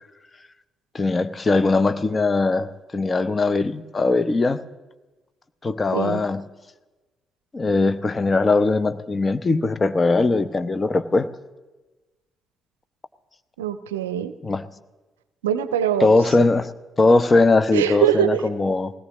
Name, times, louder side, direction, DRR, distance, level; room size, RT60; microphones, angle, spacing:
voice 1, 0.9-4.6 5.6-6.5 7.5-11.3 14.4-14.7 16.0-16.7 17.0-18.9, left 3 dB, 35° left, 13 dB, 0.8 m, -20 dB
voice 2, 13.6-14.3 15.4-16.1 17.7-18.4, right 9 dB, 85° right, 13 dB, 0.5 m, -22 dB
20.0 x 17.0 x 3.0 m, 1.2 s
figure-of-eight pair, 40°, 0 cm